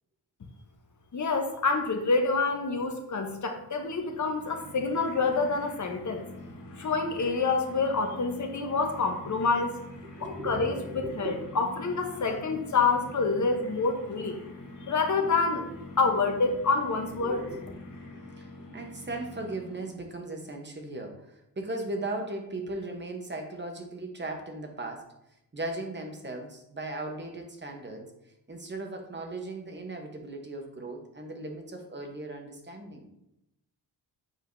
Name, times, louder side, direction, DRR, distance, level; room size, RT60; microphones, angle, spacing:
voice 1, 1.1-6.2 6.8-9.7 10.4-14.4 14.9-15.7 16.0-17.4, left 4 dB, 45° left, 4 dB, 1.0 m, -27 dB
sound 1, 3.4-20.1, left 2 dB, 85° left, 1.8 m, -45 dB
voice 2, 10.0-11.4 17.2-17.8 18.4-25.1 25.5-28.0 28.5-33.1, right 2 dB, 25° right, 3 dB, 1.0 m, -37 dB
7.7 x 4.8 x 2.7 m, 0.85 s
wide cardioid pair, 120°, 41 cm